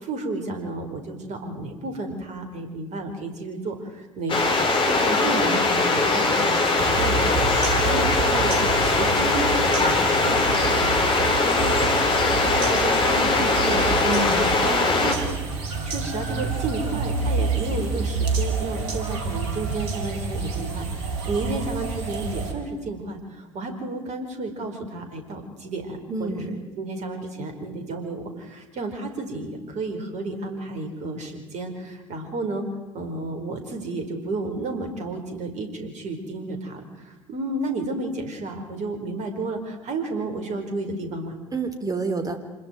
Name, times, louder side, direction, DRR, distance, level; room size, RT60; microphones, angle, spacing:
voice 1, 0.0-4.6 4.8-14.2 14.6-15.3 15.8-20.9 21.2-26.5 26.8-32.6 32.9-41.3, right 2 dB, 50° right, 5 dB, 5.0 m, -32 dB
sound 1, 4.3-15.2, left 3 dB, 35° left, 4.5 m, -21 dB
sound 2, 6.8-22.5, right 4 dB, 65° right, 4.2 m, -29 dB
voice 2, 14.0-14.6 26.1-26.6 41.5-42.4, right 3 dB, 20° right, 7 dB, 3.5 m, -28 dB
26.5 x 21.5 x 4.7 m, 1.3 s
figure-of-eight pair, 60°, 16 cm